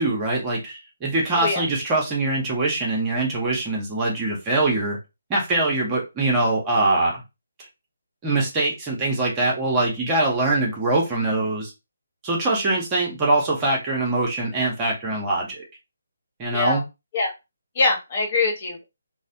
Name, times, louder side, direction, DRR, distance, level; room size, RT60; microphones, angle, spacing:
voice 1, 0.0-5.0 5.3-7.2 8.2-11.7 12.2-15.6 16.4-16.8, right 2 dB, 15° right, -2 dB, 0.8 m, -23 dB
voice 2, 17.8-18.8, left 3 dB, 35° left, 1 dB, 0.8 m, -23 dB
3.2 x 2.1 x 2.7 m, 0.25 s
figure-of-eight pair, 145°, 0 cm